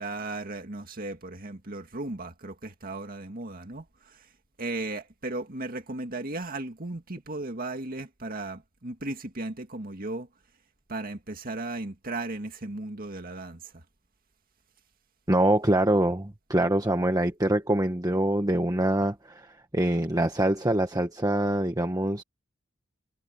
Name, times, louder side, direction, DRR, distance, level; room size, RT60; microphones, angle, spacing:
voice 1, 0.0-4.3 4.6-10.3 10.9-13.8, right 2 dB, 45° right, 2.2 m, -36 dB
voice 2, 15.3-22.2, right 1 dB, 20° right, 1.3 m, -25 dB
head